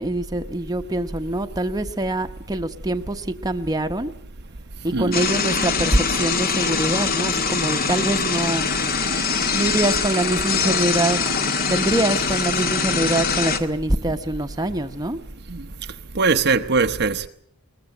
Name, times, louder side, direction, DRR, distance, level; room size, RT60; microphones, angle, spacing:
voice 1, 0.0-4.1 4.8-8.7 9.5-11.2 11.6-15.2, right 1 dB, 15° right, 1.0 m, -24 dB
sound 1, 5.1-13.6, left 5 dB, 45° left, 1.6 m, -23 dB
voice 2, 16.1-17.3, right 4 dB, 50° right, 0.9 m, -21 dB
21.5 x 19.5 x 7.8 m
head